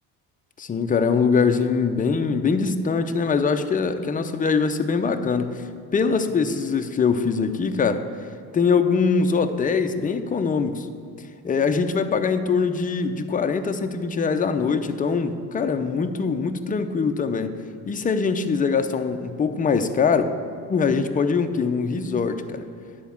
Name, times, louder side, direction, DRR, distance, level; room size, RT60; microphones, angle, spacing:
voice 1, 0.6-5.7 5.9-8.0 8.5-10.9 11.4-17.5 17.9-20.3 20.7-22.6, left 5 dB, 20° left, 7 dB, 0.5 m, -22 dB
10.0 x 4.7 x 7.1 m, 2.4 s
cardioid pair, 105°, 39 cm